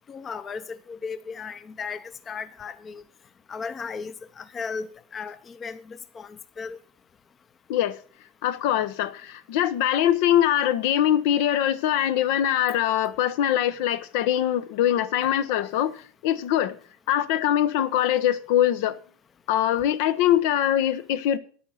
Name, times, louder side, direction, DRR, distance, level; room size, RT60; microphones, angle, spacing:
voice 1, 0.1-3.0 3.5-6.8, left 5 dB, 25° left, 0.7 m, -36 dB
voice 2, 8.4-16.0 16.2-16.7 17.1-19.0 19.5-21.4, left 11 dB, 70° left, 0.9 m, -23 dB
10.0 x 8.9 x 6.4 m
supercardioid pair, 140°, 0 cm